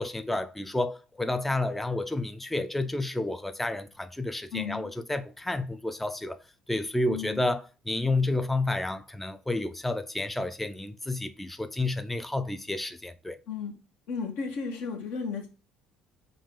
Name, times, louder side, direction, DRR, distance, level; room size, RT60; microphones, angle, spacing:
voice 1, 0.0-6.4 6.7-13.4, left 2 dB, 5° left, 0.3 m, -30 dB
voice 2, 4.5-4.9 7.1-7.4 13.5-13.7 14.1-15.5, left 5 dB, 75° left, 0.9 m, -34 dB
3.6 x 2.4 x 3.6 m
hypercardioid pair, 70°, 2 cm